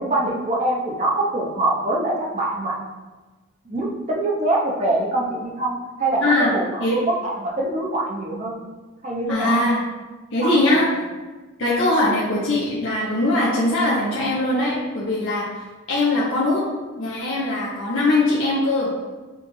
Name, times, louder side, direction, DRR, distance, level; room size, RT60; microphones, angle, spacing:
voice 1, 0.0-2.8 3.6-8.6 9.0-9.6 10.4-10.8, right 2 dB, 35° right, -3 dB, 0.7 m, -24 dB
voice 2, 6.2-7.0 9.3-9.8 10.3-10.9 11.6-15.5 15.9-16.6 17.0-18.9, left 2 dB, 65° left, -7 dB, 0.8 m, -21 dB
6.9 x 2.4 x 3.1 m, 1.3 s
head